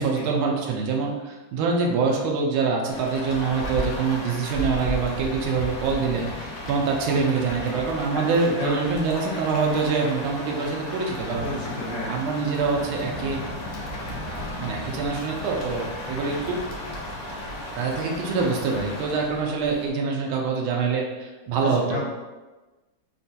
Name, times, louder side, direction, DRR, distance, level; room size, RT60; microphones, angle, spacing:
voice 1, 0.0-11.5 12.1-13.4 14.1-16.6 17.7-22.0, right 4 dB, 85° right, 0 dB, 1.4 m, -25 dB
Rain, 2.9-19.9, equal, 70° left, 1.2 m, -34 dB
voice 2, 8.1-8.9 11.4-12.2 21.5-22.1, left 1 dB, 55° left, -8 dB, 1.4 m, -32 dB
4.1 x 2.2 x 2.7 m, 1.2 s
omnidirectional pair, 2.2 m